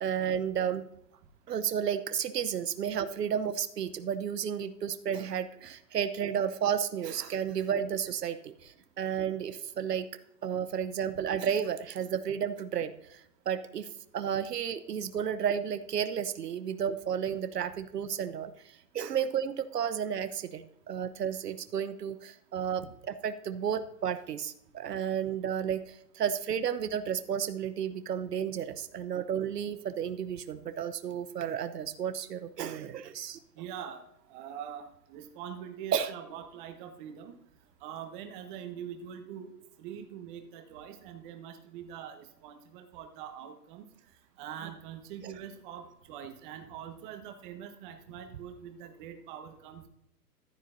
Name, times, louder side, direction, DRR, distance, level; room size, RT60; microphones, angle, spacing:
voice 1, 0.0-0.8 1.5-10.1 10.4-13.2 13.5-13.9 14.1-18.5 18.9-22.8 23.2-33.4 35.9-36.1 45.2-45.3, right 8 dB, 90° right, 11 dB, 0.9 m, -32 dB
voice 2, 33.6-34.0 34.3-37.3 37.8-39.5 39.8-43.8 44.4-49.9, right 9 dB, 30° right, 6 dB, 1.4 m, -43 dB
14.5 x 8.4 x 2.6 m, 0.79 s
hypercardioid pair, 145°, 47 cm